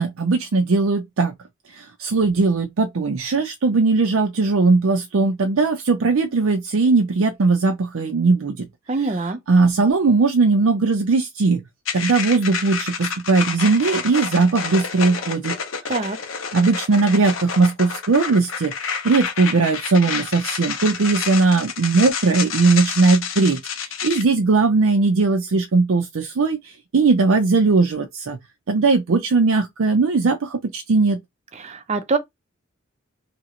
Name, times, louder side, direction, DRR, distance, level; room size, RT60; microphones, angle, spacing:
voice 1, 0.0-1.3 1.7-8.7 9.0-9.2 9.5-11.6 11.9-15.6 16.5-28.4 28.7-31.2, right 3 dB, 80° right, 0.5 m, -19 dB
voice 2, 8.9-9.4 15.9-16.2 31.6-32.2, right 4 dB, 30° right, 0.5 m, -24 dB
sound 1, 11.8-24.2, left 6 dB, 70° left, 0.8 m, -29 dB
2.9 x 2.5 x 2.9 m
head